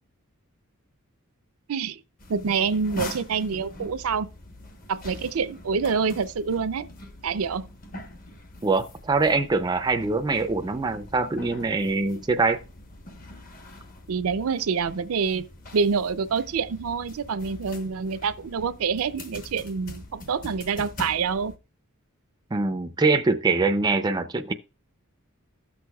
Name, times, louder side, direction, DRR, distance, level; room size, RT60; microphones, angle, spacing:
voice 1, 1.7-2.0 2.3-4.3 4.9-6.9 7.2-7.7 14.1-15.4 15.7-21.5, right 5 dB, 75° right, 0.5 m, -26 dB
sound 1, 2.2-21.6, left 1 dB, 40° left, 1.0 m, -43 dB
voice 2, 8.6-12.6 22.5-24.5, right 3 dB, 20° right, 0.4 m, -23 dB
16.0 x 6.2 x 2.3 m
head